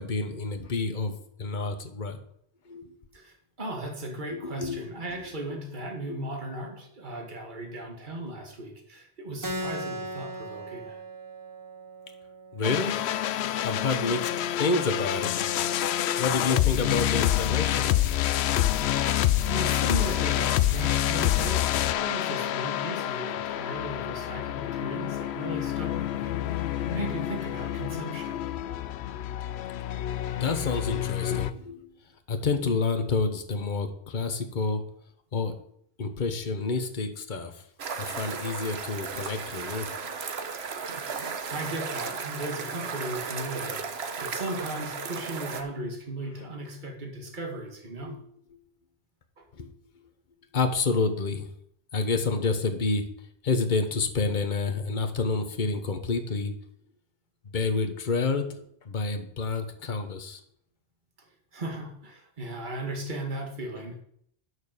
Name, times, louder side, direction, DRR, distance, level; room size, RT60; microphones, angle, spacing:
voice 1, 0.0-2.2 2.7-2.9 4.3-4.9 6.1-6.2 12.5-13.0 13.6-15.5 15.8-18.1 30.4-31.9 32.3-34.8 35.3-35.6 36.0-37.6 38.0-39.9 48.0-48.2 49.5-49.7 50.5-51.5 51.9-53.1 53.4-56.6 57.5-60.4, left 4 dB, 45° left, 7 dB, 1.3 m, -29 dB
voice 2, 3.1-11.0 19.5-28.4 41.1-41.2 41.5-48.2 61.5-64.0, right 1 dB, 45° right, 2 dB, 2.0 m, -37 dB
Keyboard (musical), 9.4-14.5, right 1 dB, 20° right, 0.8 m, -39 dB
sound 1, 12.6-31.5, left 12 dB, 75° left, 0.8 m, -27 dB
sound 2, 37.8-45.6, right 5 dB, 65° right, 1.3 m, -35 dB
9.2 x 6.5 x 6.7 m, 0.69 s
omnidirectional pair, 1.2 m